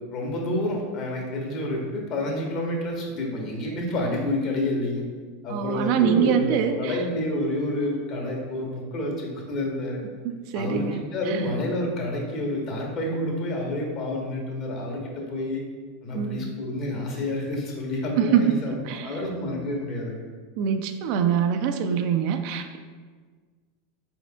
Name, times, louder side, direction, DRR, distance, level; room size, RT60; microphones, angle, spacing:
voice 1, 0.1-5.0 5.4-10.0 10.5-15.6 16.0-18.7 19.0-20.3, left 1 dB, 50° left, 0 dB, 1.1 m, -29 dB
voice 2, 5.5-7.0 10.2-11.4 16.1-16.5 18.2-19.2 20.6-22.8, right 8 dB, 60° right, 7 dB, 0.3 m, -24 dB
4.9 x 4.4 x 2.3 m, 1.5 s
hypercardioid pair, 95°, 0 cm